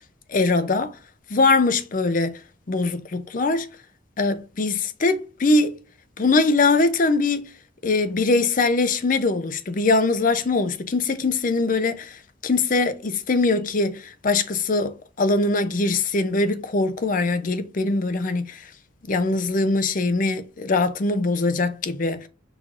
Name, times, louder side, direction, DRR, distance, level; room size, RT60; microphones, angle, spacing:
voice 1, 0.3-1.0 1.3-2.3 2.7-3.7 4.2-5.7 6.2-7.5 7.8-18.7 19.0-22.3, left 3 dB, 40° left, 0.5 m, -22 dB
4.9 x 3.8 x 2.5 m
head